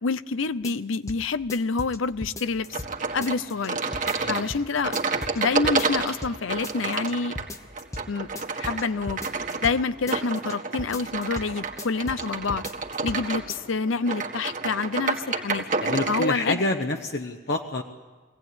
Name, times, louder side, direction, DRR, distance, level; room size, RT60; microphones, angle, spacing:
voice 1, 0.0-2.8 3.1-3.8 4.3-5.0 5.3-7.4 8.1-8.3 8.6-12.7 13.0-15.6 16.1-16.6, left 4 dB, 80° left, 15 dB, 0.7 m, -27 dB
sound 1, 0.6-1.2 1.5-2.9 3.2-3.7 3.9-4.6 4.9-5.4 5.6-6.4 6.6-7.1 7.4-8.1 8.4-9.8 10.1-10.5 10.8-11.5 11.8-12.2 12.5-13.2 13.5-13.6, left 1 dB, 15° left, 1.0 m, -37 dB
sound 2, 2.7-16.3, right 4 dB, 40° right, 1.8 m, -30 dB
voice 2, 15.8-17.8, left 2 dB, 55° left, 3 dB, 1.1 m, -27 dB
23.5 x 17.5 x 9.5 m, 1.3 s
head